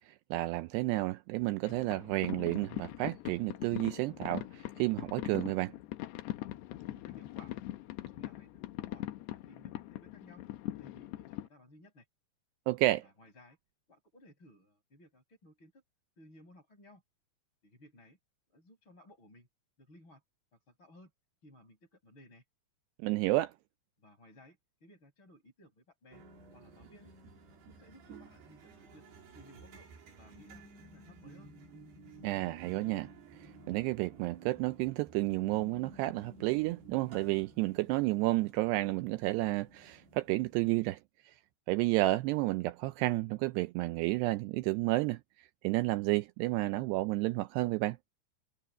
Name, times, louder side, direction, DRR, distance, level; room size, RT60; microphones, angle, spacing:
voice 1, 0.1-5.7 12.7-13.0 23.0-23.5 32.2-33.1 33.4-41.0 41.7-48.0, right 19 dB, 85° right, 2.4 m, -31 dB
sound 1, 1.6-11.5, left 15 dB, 75° left, 2.8 m, -41 dB
voice 2, 6.7-9.1 9.3-10.5 10.8-12.1 13.0-13.6 13.9-15.8 16.2-17.0 17.6-18.2 18.5-19.5 19.8-20.2 20.7-21.1 21.4-22.4 24.0-26.2 26.5-27.1 27.5-29.0 29.3-29.9 30.2-31.5, left 1 dB, 25° left, 6.9 m, -59 dB
sound 2, 26.1-40.7, right 2 dB, 60° right, 5.9 m, -54 dB
omnidirectional pair, 5.3 m